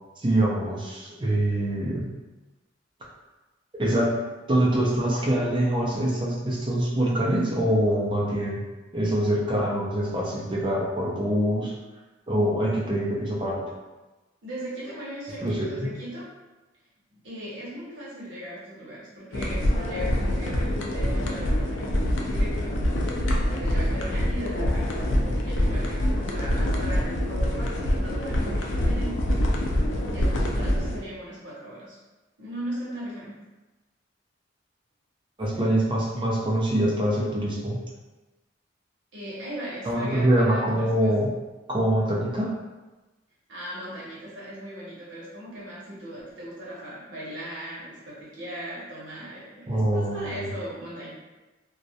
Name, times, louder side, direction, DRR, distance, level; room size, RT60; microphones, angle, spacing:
voice 1, 0.2-2.2 3.8-4.1 4.5-8.6 8.9-11.7 12.3-13.6 15.4-15.9 35.4-37.8 39.8-41.3 41.7-42.6 49.7-50.5, right 1 dB, 25° right, -4 dB, 0.5 m, -24 dB
voice 2, 14.4-16.3 17.1-22.8 23.5-29.6 30.1-32.0 32.4-33.4 39.1-41.1 43.5-51.1, right 1 dB, 80° right, -8 dB, 0.9 m, -38 dB
sound 1, 19.3-31.0, left 1 dB, 85° left, 0.4 m, -25 dB
2.3 x 2.0 x 2.7 m, 1.1 s
head